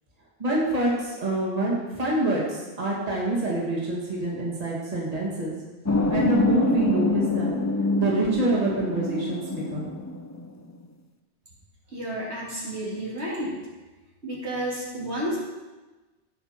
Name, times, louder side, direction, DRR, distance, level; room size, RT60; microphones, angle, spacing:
voice 1, 0.4-5.5 6.1-7.6 8.0-9.4 9.7-9.9, right 2 dB, 35° right, -5 dB, 2.2 m, -26 dB
sound 1, 5.9-10.9, left 3 dB, 20° left, 0.5 m, -26 dB
voice 2, 11.9-13.6 14.2-15.4, right 1 dB, 75° right, -6 dB, 3.3 m, -31 dB
17.0 x 5.9 x 4.4 m, 1.2 s
omnidirectional pair, 1.1 m